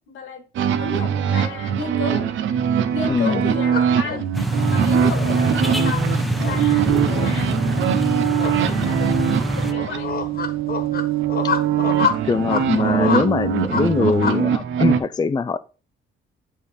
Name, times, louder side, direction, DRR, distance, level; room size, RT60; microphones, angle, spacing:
voice 1, 0.1-0.4 0.8-2.3 2.9-4.3 4.7-6.0 6.3-7.5 8.1-10.2, left 5 dB, 85° left, 1.8 m, -32 dB
sound 1, 0.5-15.0, right 9 dB, 75° right, 0.8 m, -22 dB
voice 2, 3.1-3.4 12.3-15.6, left 5 dB, 20° left, 0.4 m, -22 dB
sound 2, 3.7-14.4, left 6 dB, 50° left, 1.4 m, -28 dB
sound 3, 4.3-9.7, equal, ahead, 0.9 m, -24 dB
8.7 x 3.7 x 4.3 m
cardioid pair, 90°, 20 cm